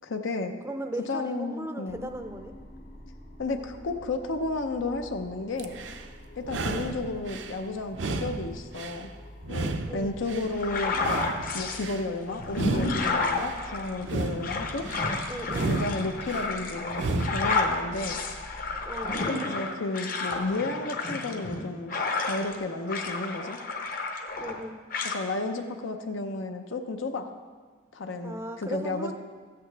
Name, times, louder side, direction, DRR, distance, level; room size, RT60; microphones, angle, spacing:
voice 1, 0.0-0.5 1.1-2.1 3.4-5.8 6.4-9.1 9.5-11.0 11.5-14.9 15.5-18.2 19.4-23.6 25.0-27.3 27.9-29.1, left 2 dB, 75° left, 5 dB, 0.7 m, -32 dB
voice 2, 0.6-2.5 6.6-6.9 9.9-10.1 15.3-15.7 18.8-19.2 24.4-24.8 28.2-29.1, right 1 dB, 15° right, 7 dB, 0.5 m, -37 dB
sound 1, 1.9-19.2, equal, 60° left, 2.1 m, -47 dB
sound 2, 5.6-6.1 6.4-7.6 7.9-9.1 9.4-10.5 10.9-12.0 12.5-13.6 14.0-15.1 15.5-16.5 16.9-17.6, right 3 dB, 70° right, 0.6 m, -33 dB
sound 3, 10.6-11.8 12.3-22.6 22.9-24.6 24.9-25.2, left 3 dB, 45° left, 0.9 m, -31 dB
14.0 x 8.6 x 3.4 m, 1.5 s
head